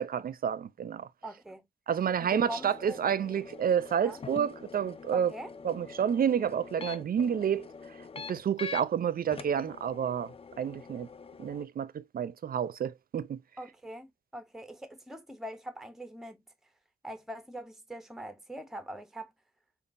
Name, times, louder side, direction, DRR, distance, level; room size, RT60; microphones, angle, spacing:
voice 1, 0.0-1.1 1.9-5.3 5.6-7.7 8.3-11.1 11.4-13.4, right 8 dB, 65° right, 0.4 m, -29 dB
voice 2, 1.2-1.6 2.2-3.0 4.0-4.2 5.1-5.5 13.6-16.4 17.0-19.3, right 1 dB, ahead, 0.7 m, -42 dB
sound 1, 2.2-8.8 9.3-11.6, left 5 dB, 35° left, 0.4 m, -45 dB
5.2 x 2.4 x 2.5 m
cardioid pair, 65°, 16 cm